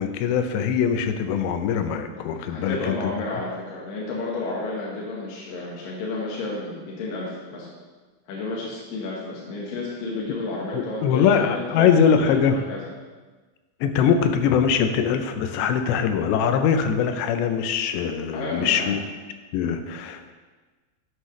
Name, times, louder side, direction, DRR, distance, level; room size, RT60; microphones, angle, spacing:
voice 1, 0.0-3.1 10.7-12.6 13.8-19.0 19.5-20.3, left 7 dB, 85° left, 7 dB, 2.8 m, -22 dB
voice 2, 2.5-7.7 8.3-12.8 18.3-18.9, left 2 dB, 65° left, -5 dB, 2.6 m, -31 dB
12.0 x 8.0 x 3.1 m, 1.3 s
omnidirectional pair, 5.1 m